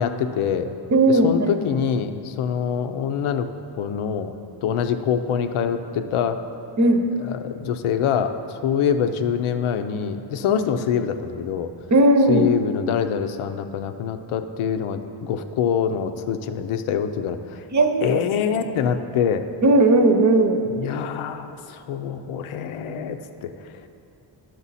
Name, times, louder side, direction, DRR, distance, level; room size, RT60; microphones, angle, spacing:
voice 1, 0.0-0.7 1.1-3.5 3.8-4.3 4.6-6.4 7.3-11.7 12.3-17.6 18.0-19.5 20.8-23.7, left 7 dB, 90° left, 8 dB, 0.6 m, -25 dB
voice 2, 0.9-1.5 6.8-7.0 11.9-12.5 17.7-18.2 19.6-20.6, right 2 dB, 35° right, 6 dB, 0.8 m, -17 dB
11.0 x 6.6 x 4.1 m, 2.6 s
cardioid pair, 90°, 48 cm